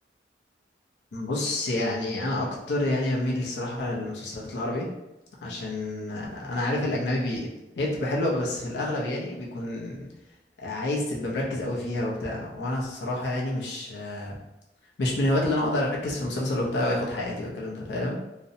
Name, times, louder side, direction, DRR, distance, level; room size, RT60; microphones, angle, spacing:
voice 1, 1.1-4.9 5.4-7.5 7.8-10.0 10.6-14.4 15.0-18.2, left 1 dB, 80° left, -3 dB, 0.6 m, -28 dB
2.6 x 2.0 x 2.6 m, 0.96 s
head